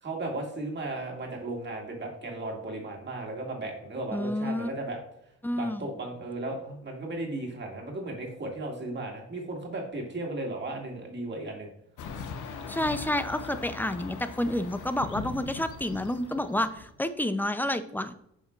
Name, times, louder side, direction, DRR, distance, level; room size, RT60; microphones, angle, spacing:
voice 1, 0.0-5.0 5.5-11.7, right 2 dB, 35° right, 0 dB, 2.1 m, -35 dB
voice 2, 4.1-4.7 5.4-5.9 12.7-18.1, left 1 dB, 5° left, 11 dB, 0.5 m, -29 dB
sound 1, 12.0-17.0, left 5 dB, 80° left, 0.9 m, -40 dB
7.6 x 5.6 x 2.4 m, 0.73 s
cardioid pair, 90°, 30 cm